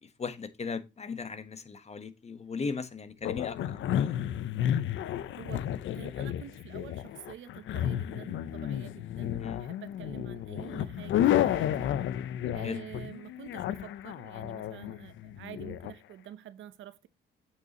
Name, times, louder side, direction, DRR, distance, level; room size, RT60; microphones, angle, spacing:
voice 1, 0.0-4.2 9.4-9.6 12.6-12.8, left 5 dB, 35° left, 1.2 m, -37 dB
sound 1, 3.2-15.9, left 11 dB, 75° left, 0.7 m, -32 dB
voice 2, 5.9-11.9 12.5-17.1, right 11 dB, 75° right, 0.8 m, -47 dB
8.2 x 6.7 x 3.0 m
cardioid pair, 90°, 20 cm